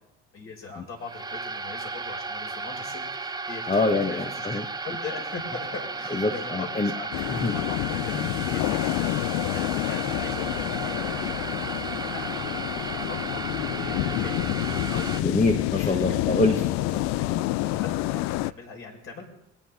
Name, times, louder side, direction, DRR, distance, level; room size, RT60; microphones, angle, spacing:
voice 1, 0.3-11.5 12.0-12.6 13.0-13.4 13.7-14.4 14.9-15.2 15.8-16.0 17.1-19.2, left 4 dB, 45° left, 0 dB, 5.9 m, -41 dB
sound 1, 1.0-15.2, right 3 dB, 15° right, 0.8 m, -34 dB
voice 2, 3.7-4.7 6.1-6.9 7.4-7.5 8.2-8.4 15.2-17.0, left 3 dB, 25° left, 4 dB, 1.5 m, -25 dB
sound 2, 7.1-18.5, left 18 dB, 65° left, 0.4 m, -28 dB
sound 3, 10.1-18.4, right 10 dB, 70° right, 1.4 m, -44 dB
25.5 x 9.7 x 3.7 m, 0.85 s
supercardioid pair, 85°, 30 cm